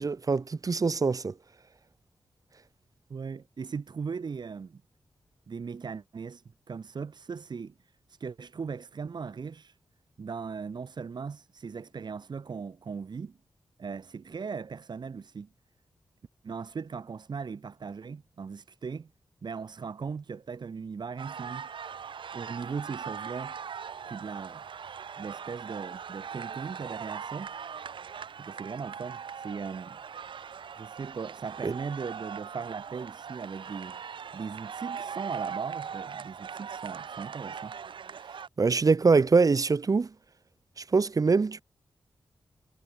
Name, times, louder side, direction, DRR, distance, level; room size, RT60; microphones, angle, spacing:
voice 1, 0.0-1.3 31.6-31.7 38.6-40.1 40.9-41.6, right 4 dB, 45° right, 3.1 m, -23 dB
voice 2, 3.1-4.8 5.5-9.8 10.2-13.4 13.8-15.5 16.4-19.1 19.4-21.7 22.3-23.6 24.1-24.6 25.2-27.5 28.4-30.0 30.7-34.0 34.3-37.8, right 5 dB, 60° right, 6.2 m, -38 dB
sound 1, 21.2-38.5, right 7 dB, 90° right, 7.6 m, -40 dB
wide cardioid pair, 100°, 8 cm